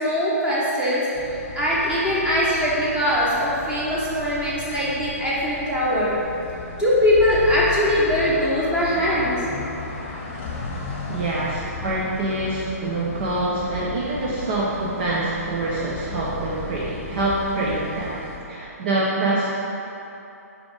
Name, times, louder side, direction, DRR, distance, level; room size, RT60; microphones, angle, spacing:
voice 1, 0.0-6.1 6.8-9.5, left 1 dB, 10° right, -8 dB, 1.2 m, -21 dB
sound 1, 1.1-18.4, left 5 dB, 30° left, 1.0 m, -36 dB
voice 2, 11.1-19.5, right 2 dB, 40° right, -5 dB, 0.7 m, -25 dB
5.0 x 4.9 x 4.9 m, 2.9 s
figure-of-eight pair, 125°, 9 cm